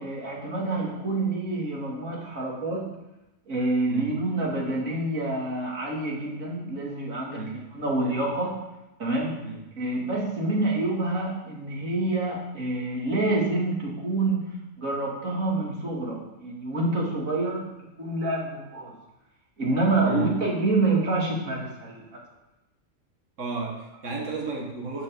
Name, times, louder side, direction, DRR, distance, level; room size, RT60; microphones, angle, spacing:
voice 1, 0.0-2.9 3.5-8.6 9.0-9.3 9.8-14.4 14.8-17.7 18.0-18.9 19.6-22.1, right 2 dB, 90° right, -3 dB, 3.0 m, -27 dB
voice 2, 23.4-25.0, right 3 dB, 65° right, -1 dB, 2.1 m, -32 dB
11.5 x 6.0 x 6.9 m, 0.93 s
omnidirectional pair, 1.4 m